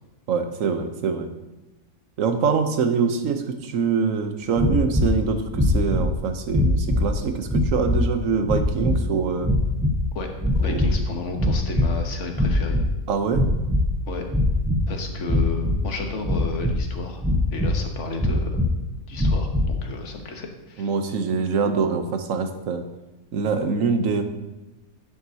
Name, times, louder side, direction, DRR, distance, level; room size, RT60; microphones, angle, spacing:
voice 1, 0.3-1.3 2.2-9.5 10.6-10.8 13.1-13.4 20.8-22.8 23.3-24.2, right 5 dB, 65° right, 7 dB, 1.2 m, -24 dB
sound 1, 4.6-5.2 5.5-6.1 6.5-7.1 7.5-8.1 8.4-9.0 9.4-10.1 10.4-11.0 11.3-12.0 12.3-12.9 13.3-13.9 14.3-14.9 15.2-15.8 16.2-16.8 17.2-17.8 18.2-18.7 19.1-19.7, left 1 dB, 5° right, 0.6 m, -22 dB
voice 2, 10.6-12.8 14.1-14.2 14.9-17.2 17.5-18.6 19.1-20.9, left 3 dB, 55° left, 3 dB, 1.4 m, -33 dB
10.5 x 7.8 x 2.8 m, 1.1 s
omnidirectional pair, 1.5 m